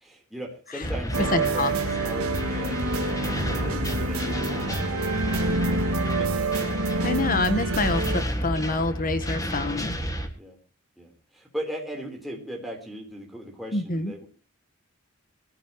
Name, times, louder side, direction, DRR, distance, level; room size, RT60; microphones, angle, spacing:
voice 1, 0.0-6.6 10.4-10.6 11.0-14.3, equal, ahead, 0 dB, 3.8 m, -39 dB
sound 1, 0.8-10.3, equal, 15° left, 1.9 m, -31 dB
sound 2, 1.1-8.2, right 2 dB, 80° right, 2.1 m, -27 dB
voice 2, 1.3-1.7 7.0-10.0 13.7-14.1, left 2 dB, 40° left, 11 dB, 1.3 m, -26 dB
22.0 x 13.5 x 3.1 m, 0.35 s
head